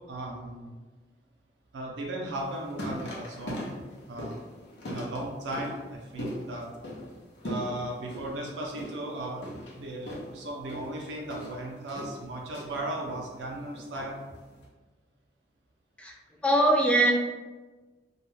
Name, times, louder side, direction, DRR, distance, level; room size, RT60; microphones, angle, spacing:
voice 1, 0.1-0.8 1.7-3.8 4.1-4.4 4.9-6.7 7.4-9.4 9.7-14.2, right 1 dB, 80° right, -1 dB, 0.4 m, -36 dB
sound 1, 2.3-14.6, equal, 70° left, 0.6 m, -41 dB
voice 2, 16.4-17.1, right 1 dB, 5° left, 0 dB, 0.3 m, -21 dB
2.3 x 2.1 x 3.1 m, 1.3 s
head